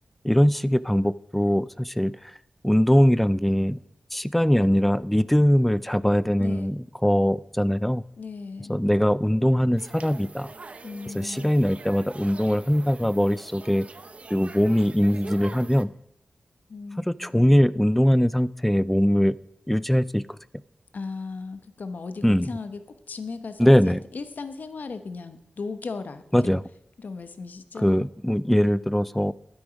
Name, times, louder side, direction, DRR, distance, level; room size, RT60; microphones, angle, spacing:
voice 1, 0.2-2.1 2.6-3.8 4.1-8.0 8.7-10.5 11.1-13.9 14.3-15.9 17.0-19.4 19.7-20.2 22.2-22.5 23.6-24.0 26.3-26.6 27.8-29.3, equal, 5° left, 18 dB, 0.3 m, -21 dB
voice 2, 8.2-8.8 10.8-11.6 16.7-17.3 20.9-22.8 23.1-26.5 27.0-28.0, left 4 dB, 70° left, 10 dB, 1.0 m, -36 dB
sound 1, 9.8-15.8, right 3 dB, 40° right, 0.6 m, -44 dB
12.0 x 9.8 x 5.1 m, 0.78 s
wide cardioid pair, 130°, 3 cm